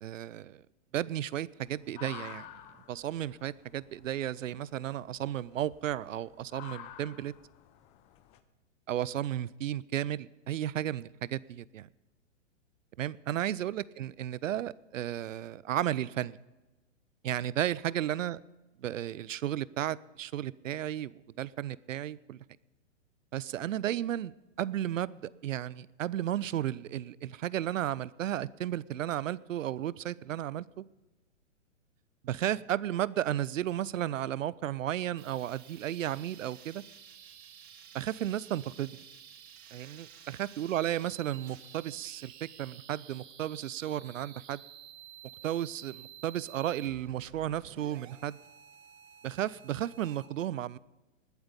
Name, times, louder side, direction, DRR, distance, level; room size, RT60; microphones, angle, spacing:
voice 1, 0.0-0.6 0.9-2.5 2.9-7.3 8.9-11.9 13.0-16.4 17.2-18.4 18.8-22.4 23.3-24.3 24.6-30.8 32.2-36.8 37.9-39.0 40.4-44.6 45.4-48.4 49.2-50.8, right 12 dB, 85° right, 21 dB, 0.6 m, -33 dB
sound 1, 1.7-8.4, left 11 dB, 20° left, 0.5 m, -51 dB
sound 2, 35.2-50.3, right 9 dB, 55° right, 1.9 m, -52 dB
20.0 x 8.0 x 5.3 m, 1.1 s
hypercardioid pair, 130°, 38 cm